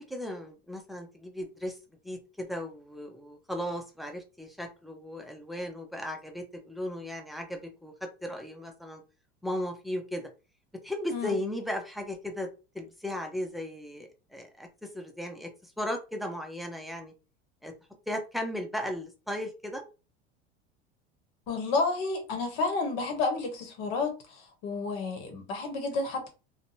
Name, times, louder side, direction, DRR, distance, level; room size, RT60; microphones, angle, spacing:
voice 1, 0.0-1.8 2.0-9.0 9.4-10.3 10.8-12.5 12.7-17.1 17.6-17.7 18.1-19.8, left 1 dB, ahead, 0.5 m, -36 dB
voice 2, 21.5-26.3, left 3 dB, 65° left, 1.1 m, -31 dB
2.6 x 2.2 x 2.7 m
hypercardioid pair, 95°, 33 cm